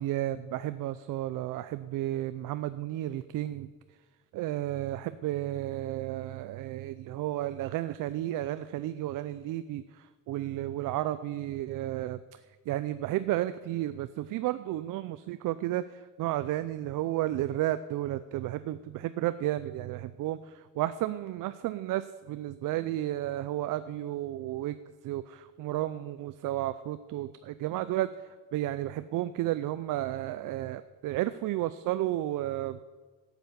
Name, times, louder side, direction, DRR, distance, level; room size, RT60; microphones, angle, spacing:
voice 1, 0.0-3.7 4.3-12.4 12.7-24.8 25.0-28.1 28.5-32.8, right 14 dB, 75° right, 13 dB, 0.5 m, -32 dB
12.5 x 8.2 x 6.9 m, 1.3 s
cardioid pair, 120°, 32 cm